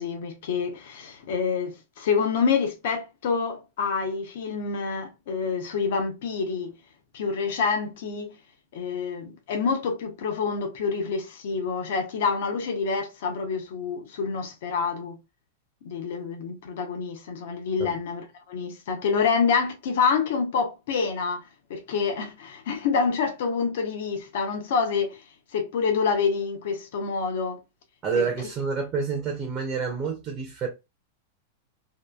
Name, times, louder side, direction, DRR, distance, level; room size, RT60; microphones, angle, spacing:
voice 1, 0.0-6.7 7.1-8.3 8.7-15.2 15.8-25.2 25.5-27.6 28.1-28.5, left 5 dB, 55° left, 0.7 m, -27 dB
voice 2, 28.0-30.7, right 5 dB, 20° right, 0.6 m, -28 dB
2.8 x 2.4 x 2.2 m
supercardioid pair, 175°, 0 cm